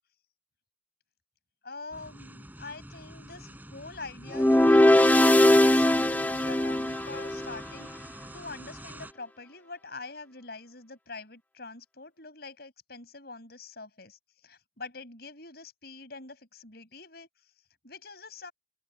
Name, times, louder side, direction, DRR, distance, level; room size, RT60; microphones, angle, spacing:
voice 1, 1.6-17.3 17.8-18.5, left 3 dB, 60° left, 7.3 m, -45 dB
sound 1, 1.9-9.1, right 1 dB, 10° right, 7.2 m, -47 dB
sound 2, 4.3-7.6, left 1 dB, 10° left, 0.5 m, -20 dB
open air
head